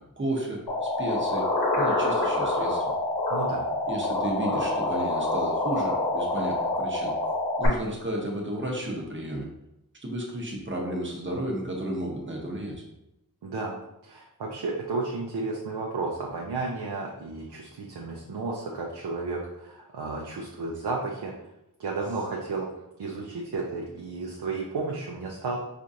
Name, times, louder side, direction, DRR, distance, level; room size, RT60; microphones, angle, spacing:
voice 1, 0.0-1.4 1.8-2.8 3.9-7.1 7.6-9.5 10.0-12.8, right 1 dB, 30° right, -1 dB, 0.8 m, -32 dB
sound 1, 0.7-7.7, left 2 dB, 85° left, 0.8 m, -26 dB
voice 2, 3.3-3.6 13.4-21.3 21.8-22.7 23.0-25.6, right 3 dB, 80° right, -2 dB, 0.6 m, -33 dB
4.4 x 2.5 x 2.6 m, 0.89 s
wide cardioid pair, 75°, 38 cm